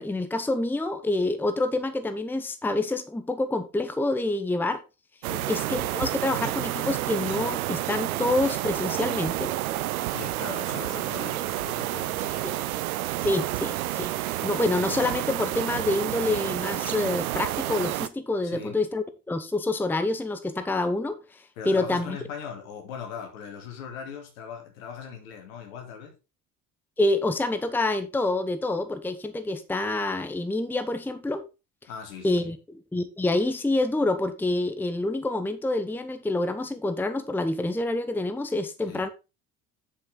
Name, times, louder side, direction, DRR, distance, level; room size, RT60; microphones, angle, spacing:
voice 1, 0.0-4.8 5.5-9.5 12.4-12.6 13.2-14.1 14.4-22.2 27.0-31.4 32.2-39.1, left 2 dB, 5° left, 0.9 m, -27 dB
sound 1, 5.2-18.1, right 15 dB, 70° right, 0.6 m, -30 dB
voice 2, 10.1-12.5 18.4-18.8 21.6-26.1 31.9-32.5 38.8-39.1, left 7 dB, 65° left, 2.7 m, -40 dB
8.5 x 7.6 x 3.8 m
figure-of-eight pair, 60°, 44 cm